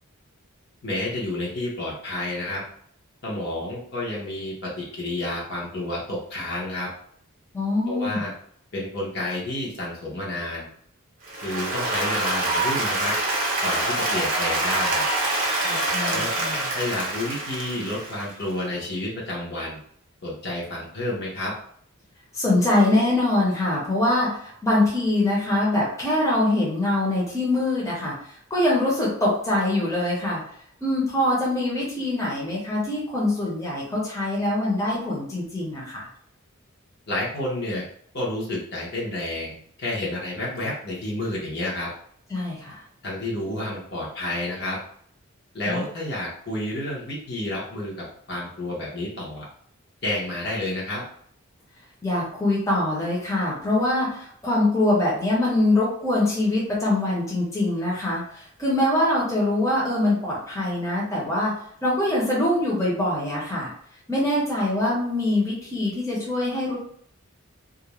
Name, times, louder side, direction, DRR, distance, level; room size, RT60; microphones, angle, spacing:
voice 1, 0.8-2.6 3.2-6.9 7.9-8.3 8.7-10.7 11.4-13.1 13.6-15.0 16.0-16.3 16.7-19.8 20.2-21.5 37.1-37.9 38.1-41.9 43.0-44.8 45.5-49.4 50.0-51.0, left 1 dB, 50° left, -5 dB, 0.8 m, -30 dB
voice 2, 7.5-8.2 15.6-16.7 22.3-28.1 28.5-30.4 30.8-36.1 42.3-42.8 45.6-45.8 52.0-61.5 61.8-63.7 64.1-66.8, left 1 dB, 15° left, -6 dB, 0.7 m, -23 dB
Applause, 11.2-18.4, right 2 dB, 40° right, 0.6 m, -25 dB
2.4 x 2.1 x 3.0 m, 0.63 s
head